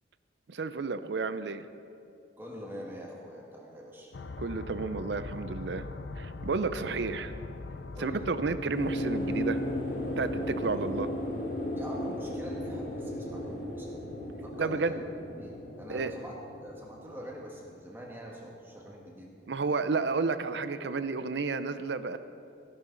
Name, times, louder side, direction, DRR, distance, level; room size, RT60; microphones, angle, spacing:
voice 1, 0.5-1.7 4.4-5.8 6.2-7.3 8.0-9.6 10.2-11.1 14.5-15.0 15.9-16.1 19.5-22.2, right 4 dB, 70° right, 12 dB, 0.5 m, -31 dB
voice 2, 2.4-4.1 7.9-8.3 11.8-14.0 14.4-15.0 15.4-19.3, equal, 10° right, -3 dB, 1.5 m, -44 dB
sound 1, 4.1-11.9, left 3 dB, 80° left, 0.5 m, -42 dB
sound 2, 8.7-18.0 18.3-18.4, equal, 50° left, 1.6 m, -35 dB
15.5 x 11.5 x 3.9 m, 2.6 s
head